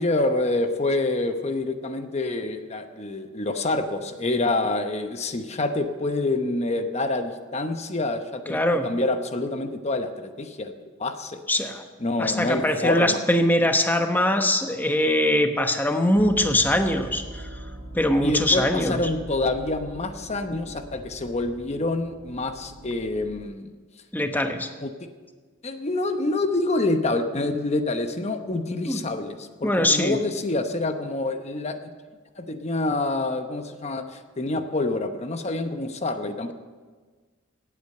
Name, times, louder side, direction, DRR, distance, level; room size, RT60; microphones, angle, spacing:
voice 1, 0.0-10.7 11.0-11.7 12.0-13.2 18.2-23.7 24.8-24.9 25.6-31.9 32.4-36.5, left 2 dB, 35° left, 8 dB, 0.9 m, -27 dB
voice 2, 8.5-8.9 11.5-11.8 12.2-17.4 17.9-19.0 24.1-24.7 28.9-29.0 29.6-30.2, left 1 dB, 10° left, 6 dB, 1.0 m, -22 dB
sound 1, 16.2-23.4, right 1 dB, 60° right, 1.3 m, -41 dB
17.5 x 8.5 x 6.6 m, 1.4 s
head